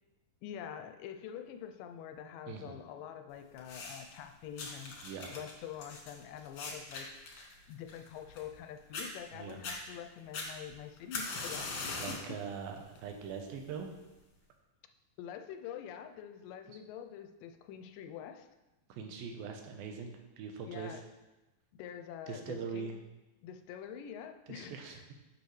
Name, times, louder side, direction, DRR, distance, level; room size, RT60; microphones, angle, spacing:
voice 1, 0.4-5.0 5.3-7.1 7.7-12.4 15.2-18.5 20.6-21.0 21.8-22.9 23.4-25.0, left 9 dB, 80° left, 7 dB, 2.1 m, -46 dB
voice 2, 2.5-2.8 5.0-5.3 9.3-9.6 12.0-13.9 18.9-21.0 22.3-23.0 24.5-25.0, right 6 dB, 85° right, 4 dB, 2.7 m, -42 dB
sound 1, 3.6-4.2 4.6-8.6 8.9-9.1 9.5-9.8 10.3-12.3 12.8-13.1 13.9-14.0, left 3 dB, 55° left, 1.7 m, -41 dB
9.8 x 6.5 x 3.2 m, 1.1 s
omnidirectional pair, 4.1 m